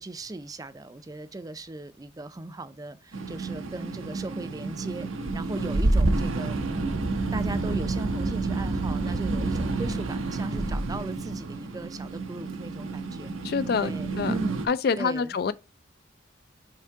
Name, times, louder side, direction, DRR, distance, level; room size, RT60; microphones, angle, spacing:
voice 1, 0.0-5.1 5.3-13.5 13.8-14.7 15.0-15.4, right 2 dB, 20° right, 0.4 m, -38 dB
sound 1, 3.1-14.7, right 2 dB, 85° right, 0.9 m, -29 dB
voice 2, 13.4-14.4 14.7-15.5, left 5 dB, 50° left, 0.3 m, -26 dB
5.7 x 3.7 x 4.6 m
head